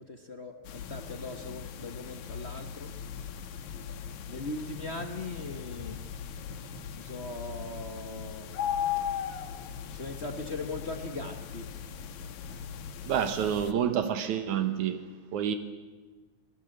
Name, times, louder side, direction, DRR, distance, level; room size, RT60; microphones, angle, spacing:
voice 1, 0.0-2.9 4.3-6.0 7.0-8.5 9.9-11.7, left 3 dB, 55° left, 0.7 m, -39 dB
sound 1, 0.6-13.7, left 8 dB, 85° left, 2.7 m, -38 dB
voice 2, 13.1-15.1 15.3-15.6, right 9 dB, 80° right, 2.6 m, -28 dB
27.5 x 19.0 x 7.9 m
omnidirectional pair, 3.3 m